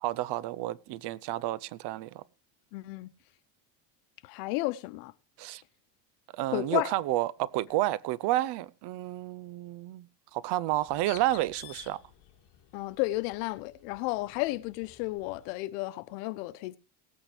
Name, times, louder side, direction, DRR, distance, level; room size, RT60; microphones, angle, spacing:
voice 1, 0.0-2.2 5.4-5.6 6.3-12.0, right 15 dB, 55° right, 0.7 m, -30 dB
voice 2, 2.7-3.1 4.2-5.1 6.5-6.9 12.7-16.8, left 19 dB, 90° left, 1.0 m, -32 dB
Bird, 10.7-15.5, left 13 dB, 60° left, 2.0 m, -52 dB
18.5 x 8.7 x 3.3 m
cardioid pair, 130°, 48 cm